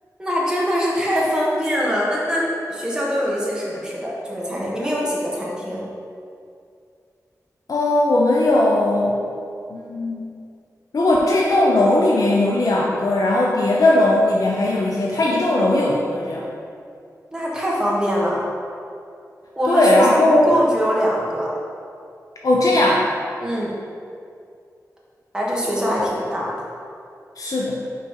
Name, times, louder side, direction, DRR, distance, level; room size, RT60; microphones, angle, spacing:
voice 1, 0.2-5.9 17.3-18.4 19.6-21.5 23.4-23.7 25.3-26.5, equal, 10° right, -5 dB, 1.3 m, -23 dB
voice 2, 7.7-9.2 9.7-10.3 10.9-16.4 19.7-20.5 22.4-23.1 27.4-27.8, left 1 dB, 65° left, -3 dB, 0.6 m, -18 dB
5.4 x 4.0 x 4.7 m, 2.4 s
wide cardioid pair, 100°, 7 cm